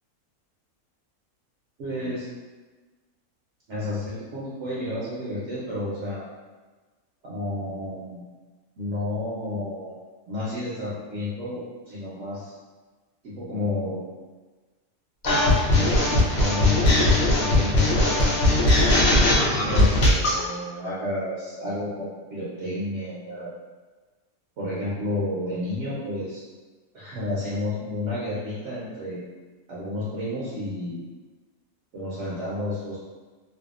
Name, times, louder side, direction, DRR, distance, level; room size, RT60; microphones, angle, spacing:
voice 1, 1.8-2.2 3.7-6.3 7.2-8.2 8.8-9.9 10.3-12.5 13.2-14.0 15.7-18.4 19.1-23.5 24.6-26.4 26.9-29.2 29.7-31.0 31.9-33.0, left 1 dB, 65° right, -7 dB, 0.9 m, -31 dB
sound 1, 15.2-20.4, left 1 dB, 60° left, 0.7 m, -19 dB
2.6 x 2.3 x 2.4 m, 1.3 s
omnidirectional pair, 1.5 m